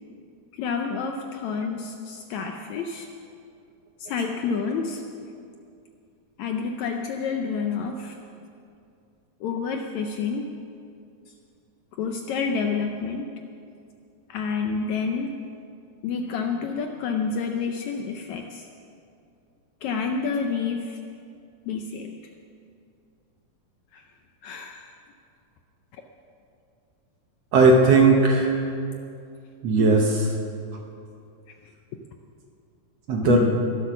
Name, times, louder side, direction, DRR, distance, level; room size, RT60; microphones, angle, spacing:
voice 1, 0.6-3.1 4.0-5.0 6.4-8.2 9.4-10.5 12.0-13.3 14.3-15.4 16.0-18.7 19.8-21.0 21.7-22.1 23.9-24.0 24.4-24.9 27.9-28.0 29.8-30.1 33.2-33.6, left 5 dB, 75° left, 4 dB, 1.7 m, -28 dB
voice 2, 27.5-28.6 29.6-30.2 33.1-33.5, right 3 dB, 65° right, 1 dB, 1.8 m, -17 dB
22.5 x 8.1 x 6.1 m, 2.4 s
omnidirectional pair, 3.9 m